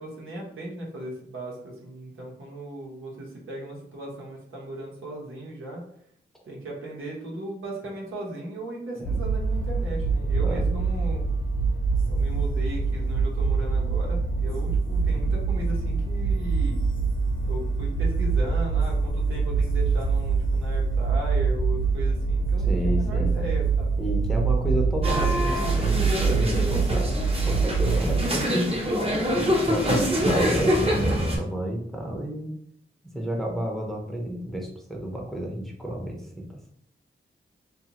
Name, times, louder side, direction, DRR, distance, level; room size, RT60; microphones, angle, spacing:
voice 1, 0.0-5.8 6.5-11.2 12.1-16.8 17.4-24.0, right 1 dB, 80° right, -3 dB, 1.0 m, -37 dB
sound 1, 9.0-28.3, right 4 dB, 75° left, 0.6 m, -24 dB
voice 2, 10.4-10.7 22.6-23.5 24.0-27.2 27.4-28.8 29.3-32.5 33.1-36.5, equal, ahead, -1 dB, 0.8 m, -31 dB
sound 2, 25.0-31.4, equal, 30° right, 0.8 m, -25 dB
2.6 x 2.5 x 2.9 m, 0.66 s
cardioid pair, 55°, 21 cm